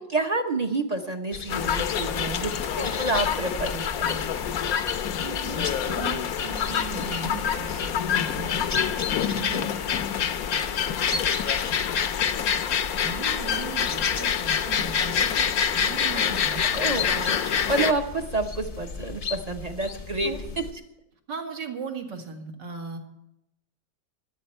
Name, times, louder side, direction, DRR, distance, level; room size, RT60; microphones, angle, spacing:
voice 1, 0.1-4.3 9.3-9.7 16.7-20.3, right 2 dB, 35° right, 5 dB, 0.7 m, -29 dB
sound 1, 1.3-20.7, left 4 dB, 40° left, 0.8 m, -37 dB
sound 2, 1.5-17.9, left 8 dB, 65° left, 1.1 m, -26 dB
voice 2, 5.2-10.0 13.0-16.6 20.2-20.4 21.3-23.0, right 5 dB, 75° right, 3 dB, 2.3 m, -38 dB
25.0 x 8.7 x 4.4 m, 0.86 s
omnidirectional pair, 1.9 m